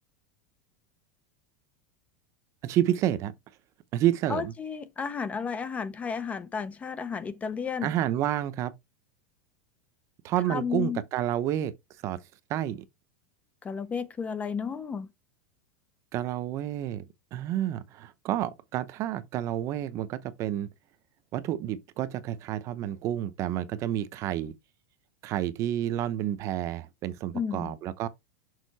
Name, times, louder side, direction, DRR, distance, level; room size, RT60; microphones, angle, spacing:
voice 1, 2.6-3.3 3.9-4.5 7.8-8.7 10.2-11.7 12.0-12.2 12.5-12.8 16.1-17.0 17.3-20.7 21.3-24.5 25.2-28.1, right 12 dB, 35° right, 0.7 m, -29 dB
voice 2, 4.3-7.9 10.5-11.0 13.6-15.1 27.3-27.7, left 6 dB, 15° left, 0.4 m, -32 dB
6.5 x 4.2 x 4.0 m
supercardioid pair, 160°, 9 cm